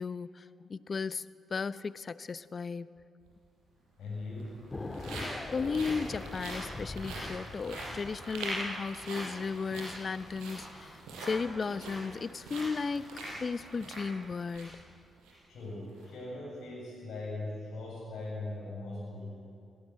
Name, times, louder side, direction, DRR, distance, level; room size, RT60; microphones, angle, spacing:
voice 1, 0.0-2.9 5.0-5.1 5.5-13.1 13.4-14.8, left 5 dB, 50° left, 16 dB, 0.7 m, -35 dB
sound 1, 3.2-3.3 4.2-14.8 15.2-15.3 15.8-16.0, right 1 dB, 80° right, 6.5 m, -42 dB
voice 2, 4.0-4.6 15.5-19.3, left 2 dB, 70° left, -7 dB, 7.7 m, -40 dB
sound 2, 4.7-8.4, left 2 dB, 30° left, 1.9 m, -42 dB
21.0 x 18.5 x 9.9 m, 2.6 s
hypercardioid pair, 40°, 0 cm